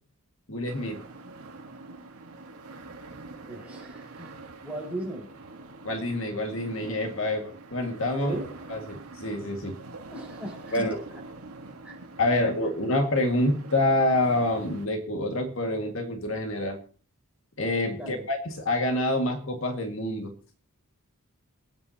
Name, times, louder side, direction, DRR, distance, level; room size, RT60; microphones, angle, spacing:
voice 1, 0.5-1.0 5.8-8.3 8.7-9.8 10.7-11.0 12.2-16.8 17.6-20.3, left 1 dB, 60° left, 4 dB, 2.0 m, -27 dB
sound 1, 0.7-14.9, right 3 dB, 85° right, 1.7 m, -45 dB
voice 2, 3.5-5.3 8.1-8.6 10.1-10.9 11.8-12.0 17.9-18.3, right 1 dB, 5° right, -2 dB, 4.8 m, -38 dB
27.5 x 9.5 x 2.9 m, 0.39 s
head